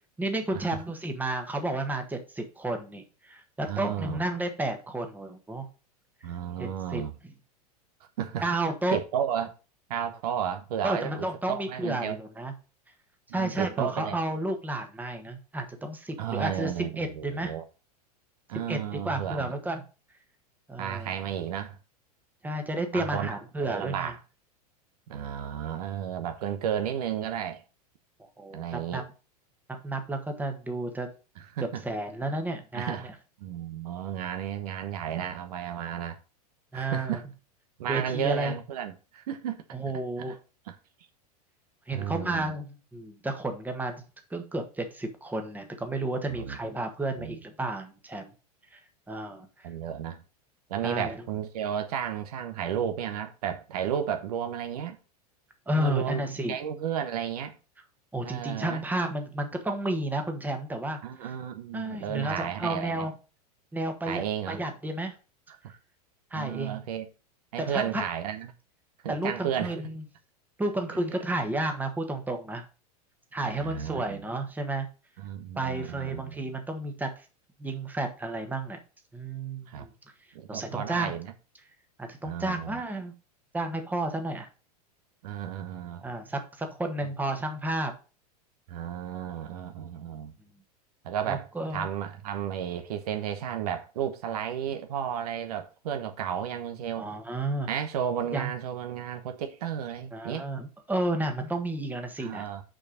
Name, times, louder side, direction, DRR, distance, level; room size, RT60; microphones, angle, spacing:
voice 1, 0.2-5.6 6.6-7.0 8.4-9.0 10.8-12.5 13.3-17.6 18.7-19.8 20.7-21.1 22.4-24.1 28.4-29.0 29.7-31.1 31.8-33.1 36.7-37.2 37.9-38.5 39.7-40.4 41.9-44.0 44.3-48.3 48.7-48.8 49.1-49.7 50.8-51.2 55.7-56.6 58.1-61.0 61.7-63.1 63.7-65.1 66.3-66.8 67.6-68.0 69.1-70.0 70.6-72.6 73.3-74.9 75.5-77.2 77.6-78.8 79.1-79.9 80.5-81.2 82.0-83.1 83.5-84.5 86.0-87.9 91.3-91.9 97.0-97.7 98.3-98.5 100.1-102.4, right 2 dB, 10° right, 1.4 m, -32 dB
voice 2, 3.7-4.2 6.2-7.1 8.2-8.5 8.9-9.5 9.9-12.2 13.3-14.1 16.2-17.6 18.5-19.5 20.8-21.8 22.9-24.2 25.1-27.6 28.5-29.0 31.5-31.8 32.7-33.1 33.4-36.2 36.7-37.2 37.8-39.6 40.2-40.3 40.7-40.8 41.9-42.5 46.3-46.6 47.2-47.4 49.6-50.2 50.7-55.0 55.7-56.2 56.5-57.5 58.2-58.8 61.0-63.0 64.1-64.6 65.5-65.8 66.3-67.1 67.5-68.5 69.0-69.7 70.9-71.0 73.4-74.2 75.2-76.4 79.7-79.9 80.3-81.3 82.2-82.8 85.2-86.0 88.7-90.3 91.0-91.4 91.7-97.1 97.7-100.5 102.2-102.6, right 9 dB, 70° right, 1.1 m, -33 dB
6.4 x 4.9 x 5.0 m
hypercardioid pair, 105°, 20 cm